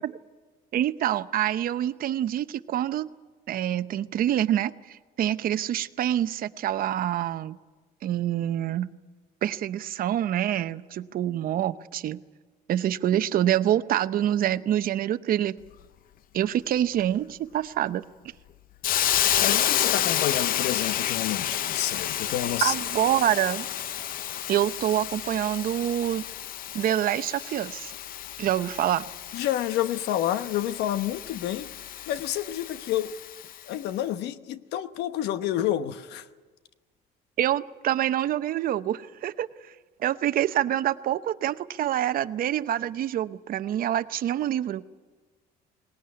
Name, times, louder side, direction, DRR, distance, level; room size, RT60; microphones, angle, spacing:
voice 1, 0.7-3.1 3.5-7.6 8.0-8.9 9.4-12.2 12.7-15.6 16.3-18.0 22.6-23.7 24.5-26.2 26.7-27.9 28.4-29.0 37.4-39.5 40.0-44.8, right 11 dB, 60° right, 12 dB, 0.8 m, -26 dB
Hiss, 18.8-33.6, left 11 dB, 55° left, 0.6 m, -30 dB
voice 2, 19.4-22.8 29.3-31.7 32.1-33.1 33.7-36.3, left 12 dB, 85° left, 12 dB, 1.0 m, -29 dB
19.5 x 18.5 x 9.7 m, 1.4 s
cardioid pair, 110°, 17 cm